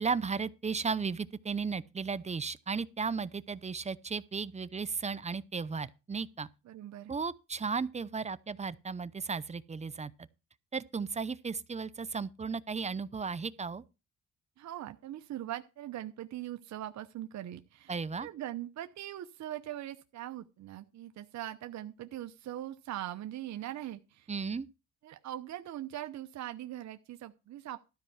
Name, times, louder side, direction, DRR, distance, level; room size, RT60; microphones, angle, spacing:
voice 1, 0.0-6.5 7.1-10.1 10.7-13.8 17.9-18.3 24.3-24.7, right 5 dB, 20° right, 0.7 m, -35 dB
voice 2, 6.7-7.1 14.6-24.3 25.0-27.8, right 13 dB, 65° right, 0.8 m, -41 dB
13.0 x 4.5 x 7.1 m
cardioid pair, 90°, 30 cm